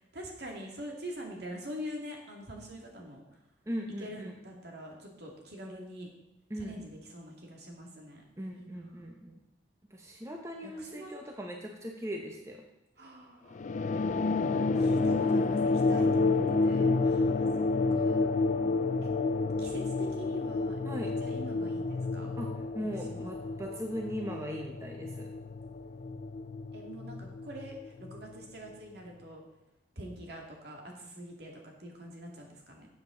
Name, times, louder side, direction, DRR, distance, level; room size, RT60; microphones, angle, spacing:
voice 1, 0.1-3.2 4.0-6.1 6.6-8.2 8.5-9.2 10.8-11.1 13.0-13.6 14.8-18.3 19.0-19.1 19.6-22.3 23.1-23.6 26.7-29.4 30.0-32.9, equal, 60° right, 0 dB, 2.3 m, -45 dB
voice 2, 3.7-4.4 6.5-6.8 8.4-9.4 9.9-12.6 13.0-13.1 14.4-14.9 20.8-21.1 22.4-22.5 22.7-25.3, equal, 15° right, 1 dB, 0.9 m, -39 dB
sound 1, 13.6-28.4, left 3 dB, 40° left, 0.4 m, -30 dB
13.0 x 7.8 x 3.9 m, 0.96 s
head